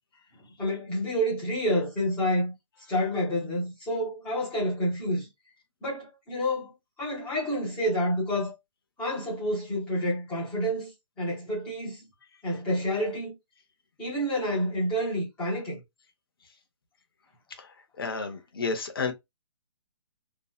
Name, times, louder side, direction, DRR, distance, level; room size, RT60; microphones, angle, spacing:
voice 1, 0.6-2.5 2.9-5.3 5.8-6.7 7.0-8.5 9.0-10.9 11.2-12.0 12.4-13.3 14.0-15.8, equal, 5° left, 0.6 m, -28 dB
voice 2, 18.0-19.1, left 4 dB, 45° left, 0.6 m, -31 dB
2.6 x 2.1 x 2.2 m
hypercardioid pair, 175°, 17 cm